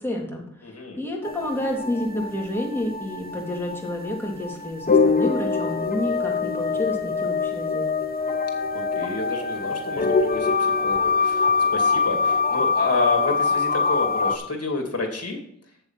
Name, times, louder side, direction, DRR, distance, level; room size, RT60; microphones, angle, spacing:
voice 1, 0.0-7.8, left 1 dB, 10° left, -2 dB, 3.0 m, -29 dB
voice 2, 0.6-1.0 8.7-15.4, left 3 dB, 55° left, 2 dB, 2.6 m, -29 dB
sound 1, 1.2-14.4, left 4 dB, 30° left, 1.1 m, -24 dB
8.3 x 7.0 x 5.8 m, 0.68 s
wide cardioid pair, 75°, 29 cm